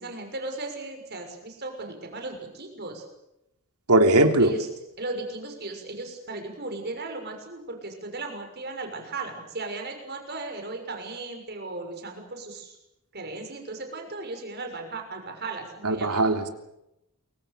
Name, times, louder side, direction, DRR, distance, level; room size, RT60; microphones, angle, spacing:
voice 1, 0.0-3.0 4.4-4.7 5.0-12.8 13.1-16.2, right 2 dB, 45° right, 4 dB, 6.3 m, -36 dB
voice 2, 3.9-4.5 15.8-16.5, right 2 dB, 90° right, 5 dB, 3.4 m, -19 dB
28.0 x 24.0 x 6.9 m, 0.87 s
head